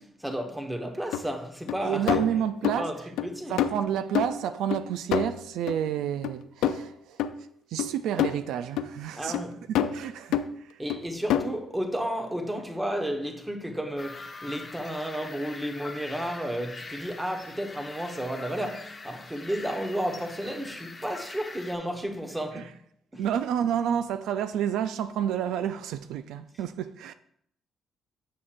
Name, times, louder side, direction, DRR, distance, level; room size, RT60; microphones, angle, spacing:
voice 1, 0.0-2.2 2.6-3.6 9.2-9.6 10.8-22.7 23.1-23.2, equal, 10° right, 1.0 m, -32 dB
sound 1, 1.1-1.2 1.7-1.8 2.1-2.9 3.2-3.3 3.6-4.8 5.1-5.8 6.2-6.4 6.6-6.9 7.2-7.3 7.8-8.4 8.8-8.9 9.3-9.4 9.7-10.0 10.3-10.5 10.9-11.0 11.3-11.6, left 9 dB, 90° left, 0.3 m, -27 dB
voice 2, 1.8-2.9 3.5-7.2 7.7-9.4 9.9-10.8 23.2-27.1, right 9 dB, 85° right, 0.3 m, -30 dB
sound 2, 14.0-21.8, left 3 dB, 30° left, 0.8 m, -43 dB
7.2 x 6.3 x 2.5 m
cardioid pair, 90°, 0 cm